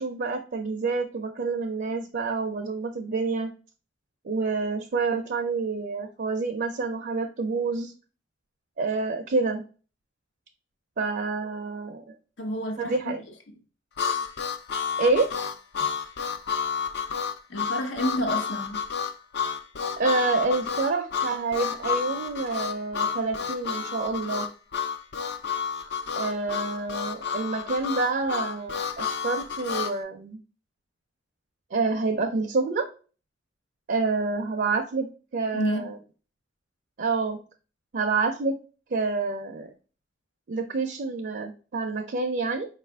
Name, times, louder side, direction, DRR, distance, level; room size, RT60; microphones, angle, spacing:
voice 1, 0.0-3.5 4.2-7.9 8.8-9.6 11.0-12.1 12.8-13.2 15.0-15.3 20.0-24.5 26.2-30.4 31.7-32.9 33.9-35.1 35.3-36.0 37.0-37.4 37.9-38.6 38.9-39.7 40.5-42.7, right 3 dB, 55° right, 0.5 m, -28 dB
voice 2, 12.4-13.1 17.5-18.8 35.5-35.8, equal, 80° left, 0.9 m, -29 dB
Harmonica, 14.0-30.0, left 7 dB, 65° left, 0.5 m, -30 dB
4.7 x 2.4 x 3.3 m
head